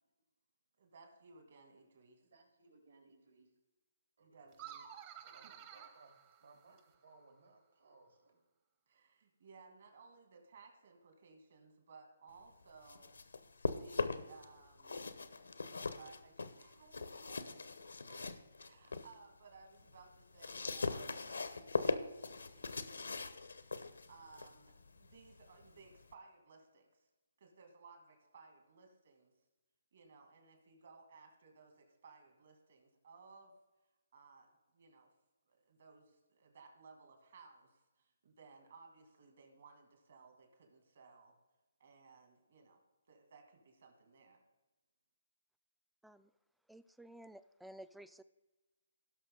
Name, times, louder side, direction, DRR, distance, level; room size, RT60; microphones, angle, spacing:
voice 1, 0.8-2.2 4.2-4.9 8.9-13.2 13.6-15.1 16.0-22.3 22.5-23.3 24.1-27.1 27.4-29.3 29.9-33.5 34.1-35.1 35.5-41.4 41.8-42.8 43.1-44.4, right 4 dB, 55° right, 4 dB, 2.3 m, -60 dB
voice 2, 2.2-3.5 4.2-4.7 5.1-8.4, right 3 dB, 75° right, 1 dB, 3.5 m, -64 dB
sound 1, 4.5-7.0, right 9 dB, 30° right, 0.9 m, -53 dB
sound 2, 12.6-14.4 14.8-19.1 19.5-26.1, left 4 dB, 80° left, 0.8 m, -41 dB
voice 3, 46.7-48.2, right 1 dB, ahead, 14 dB, 0.3 m, -54 dB
17.0 x 6.1 x 3.8 m, 1.1 s
figure-of-eight pair, 145°, 0 cm